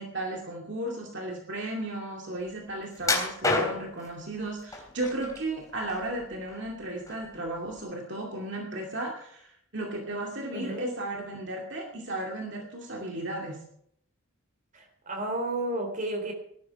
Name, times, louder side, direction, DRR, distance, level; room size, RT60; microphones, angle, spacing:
voice 1, 0.0-13.6, right 1 dB, 55° right, 0 dB, 2.4 m, -35 dB
sound 1, 3.0-4.1 4.7-5.4 5.8-6.7 7.1-7.3 7.8-7.9, left 2 dB, 15° left, 3.4 m, -28 dB
voice 2, 10.5-10.9 14.7-16.3, right 2 dB, 35° right, 4 dB, 3.7 m, -32 dB
19.0 x 12.0 x 4.8 m, 0.70 s
head